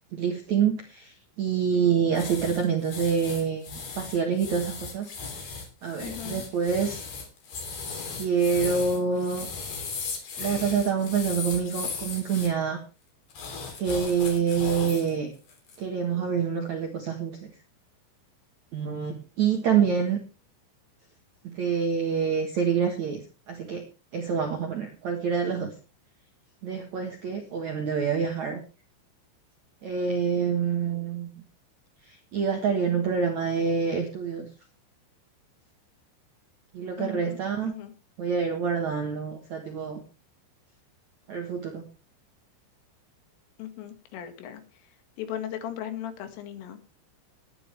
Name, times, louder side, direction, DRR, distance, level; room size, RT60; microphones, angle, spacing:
voice 1, 0.1-5.1 5.8-7.0 8.1-9.5 10.0-12.8 13.8-15.3 15.8-17.5 18.7-20.2 21.4-23.2 23.5-23.8 24.1-25.7 26.6-28.6 29.8-31.3 32.0-34.5 36.7-37.7 38.2-40.0 41.3-41.8, right 6 dB, 70° right, 4 dB, 1.8 m, -27 dB
sound 1, 2.1-12.5 13.3-15.1 15.5-15.8, left 5 dB, 45° left, 4.6 m, -37 dB
voice 2, 6.0-6.5 37.0-37.4 37.7-37.9 43.6-44.6 45.2-46.8, left 11 dB, 85° left, 8 dB, 4.4 m, -37 dB
19.0 x 10.5 x 3.4 m, 0.33 s
omnidirectional pair, 5.6 m